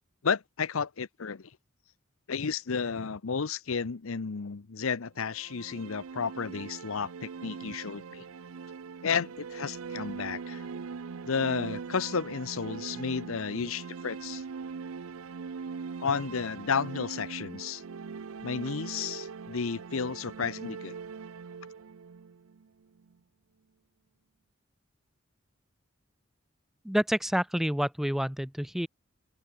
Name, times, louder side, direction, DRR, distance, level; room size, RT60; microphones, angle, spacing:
voice 1, 0.2-1.5 2.3-8.2 9.0-10.7 11.2-14.4 16.0-17.8 18.4-21.0, left 5 dB, 75° left, 0.7 m, -32 dB
sound 1, 5.2-23.1, right 5 dB, 80° right, 0.5 m, -41 dB
voice 2, 26.8-28.9, equal, ahead, 0.4 m, -28 dB
open air
head